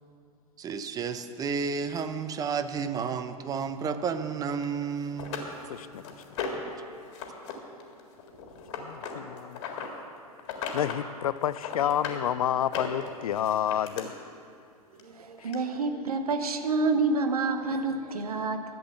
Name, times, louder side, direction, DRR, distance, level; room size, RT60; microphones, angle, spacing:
voice 1, 0.6-5.5 6.5-6.8, right 6 dB, 20° right, 10 dB, 0.6 m, -32 dB
sound 1, 4.6-4.7 5.2-6.7 7.1-7.5 7.8-9.9 10.4-11.0 11.3-12.2 12.6-14.0 15.0-15.1 15.5-15.6, left 6 dB, 50° left, 1.8 m, -36 dB
voice 2, 5.7-6.0 8.8-9.6 10.7-14.1 15.4-15.5, left 10 dB, 70° left, 17 dB, 0.4 m, -29 dB
voice 3, 15.0-18.6, right 3 dB, 75° right, 8 dB, 0.9 m, -28 dB
12.0 x 7.9 x 6.8 m, 2.5 s
figure-of-eight pair, 100°, 19 cm